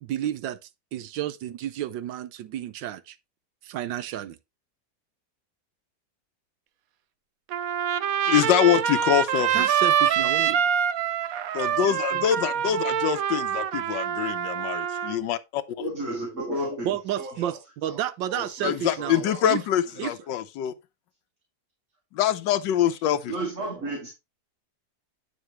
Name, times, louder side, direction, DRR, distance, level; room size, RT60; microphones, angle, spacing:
voice 1, 0.0-3.2 3.6-4.4 9.5-10.6 16.8-19.6 20.0-20.1, right 11 dB, 90° right, 1.4 m, -31 dB
Trumpet, 7.5-15.2, right 9 dB, 65° right, 0.9 m, -25 dB
voice 2, 8.3-9.8 11.5-15.9 18.6-20.7 22.2-23.3, left 11 dB, 85° left, 1.4 m, -25 dB
voice 3, 15.8-17.6 17.8-19.4 23.3-24.1, right 1 dB, 45° right, 2.5 m, -33 dB
8.9 x 6.8 x 3.1 m
omnidirectional pair, 1.9 m